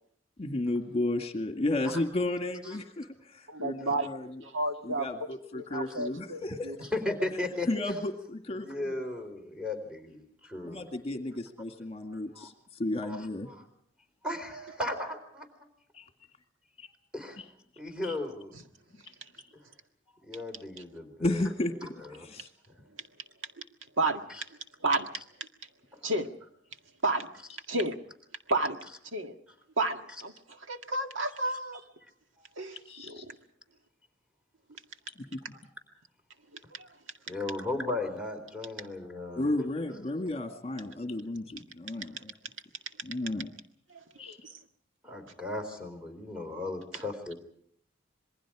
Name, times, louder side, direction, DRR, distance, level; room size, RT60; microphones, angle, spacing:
voice 1, 0.4-4.3 4.8-6.7 7.7-8.9 10.6-13.5 15.9-16.0 16.8-16.9 17.4-17.5 18.0-18.1 21.2-21.7 22.2-22.5 32.9-33.3 35.2-35.4 39.4-42.3 43.0-43.5 44.2-44.4, left 2 dB, 30° left, 4 dB, 2.0 m, -33 dB
voice 2, 3.5-4.1 4.4-5.1 5.5-6.8 24.0-24.2 24.8-25.1 26.0-26.3 27.0-27.3 27.7-28.0 28.5-28.8 29.1-29.4 29.8-31.8 32.6-32.8 33.0-33.2 36.7-36.9 43.2-43.3 43.9-44.4, right 2 dB, 80° right, 5 dB, 1.9 m, -31 dB
voice 3, 6.9-7.7 8.6-10.8 12.1-12.5 13.0-13.7 14.2-15.7 17.1-17.4 17.8-18.6 20.2-21.5 21.8-22.3 22.8-22.9 25.9-26.1 32.4-32.5 37.3-39.5 45.0-47.3, left 2 dB, 5° right, 3 dB, 4.0 m, -36 dB
27.5 x 22.0 x 4.9 m, 0.64 s
head